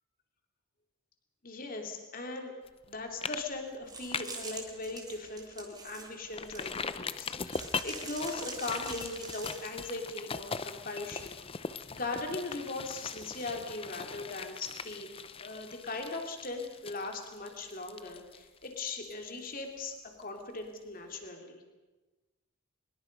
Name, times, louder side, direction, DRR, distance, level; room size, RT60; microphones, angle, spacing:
voice 1, 1.4-2.5 2.9-15.1 15.4-21.6, left 3 dB, 40° left, 3 dB, 3.0 m, -39 dB
sound 1, 2.7-2.9 3.2-3.4 3.7-4.5 4.9-5.0 5.4-5.5 6.3-19.9 20.2-20.3, left 5 dB, 25° left, 0.6 m, -40 dB
sound 2, 3.9-6.9 7.5-9.9, right 4 dB, 20° right, 3.4 m, -45 dB
24.0 x 22.0 x 5.4 m, 1.2 s
head